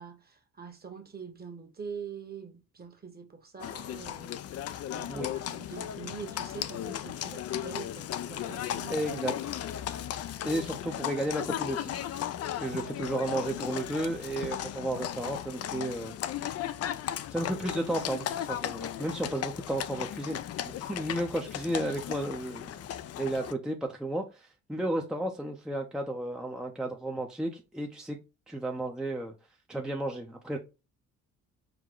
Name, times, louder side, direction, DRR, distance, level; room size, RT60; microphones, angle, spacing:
voice 1, 0.0-4.6 4.9-9.0 12.7-12.9, right 6 dB, 30° right, 1.1 m, -44 dB
Livestock farm animals working animals, 3.6-23.5, left 11 dB, 55° left, 0.4 m, -36 dB
voice 2, 8.9-9.5 10.4-11.9 12.4-16.1 17.3-20.4 20.7-22.8 23.2-28.2 28.5-29.3 29.7-30.6, right 1 dB, ahead, 0.6 m, -33 dB
4.9 x 2.2 x 3.7 m
cardioid pair, 90°, 30 cm